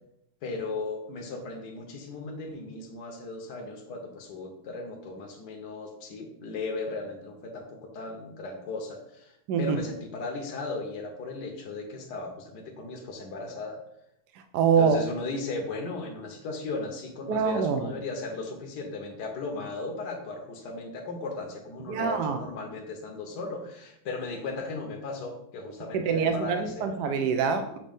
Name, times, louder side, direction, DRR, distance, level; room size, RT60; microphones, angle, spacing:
voice 1, 0.4-13.8 14.8-26.9, left 3 dB, 65° left, 1 dB, 1.4 m, -36 dB
voice 2, 14.5-15.0 17.3-17.9 21.9-22.4 25.9-27.8, right 6 dB, 70° right, 6 dB, 1.0 m, -25 dB
7.4 x 2.7 x 5.2 m, 0.76 s
omnidirectional pair, 2.2 m